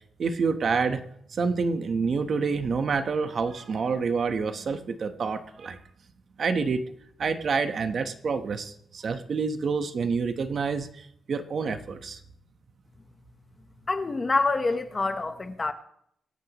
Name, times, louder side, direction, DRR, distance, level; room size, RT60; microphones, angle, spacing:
voice 1, 0.2-1.0 1.3-5.8 6.4-6.8 7.2-12.2, right 5 dB, 40° right, 1.1 m, -28 dB
voice 2, 13.9-15.7, left 3 dB, 20° left, 1.0 m, -26 dB
24.5 x 11.0 x 3.0 m
wide cardioid pair, 175°, 0 cm